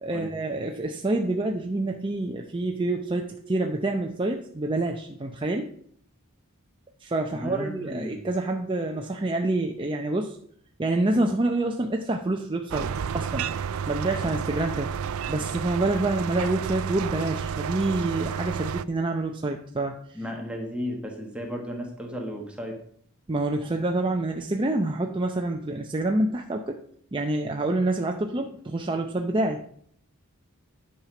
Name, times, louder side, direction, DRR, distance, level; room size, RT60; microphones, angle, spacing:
voice 1, 0.0-5.7 7.0-10.4 10.8-12.9 13.1-13.5 13.9-14.9 15.3-19.9 23.3-26.8 27.1-29.6, right 2 dB, 25° right, 2 dB, 0.6 m, -27 dB
voice 2, 7.3-8.2 20.1-22.8, equal, 5° right, 0 dB, 1.5 m, -34 dB
sound 1, 12.7-18.8, right 7 dB, 90° right, 0.4 m, -31 dB
10.5 x 5.8 x 5.0 m, 0.63 s
head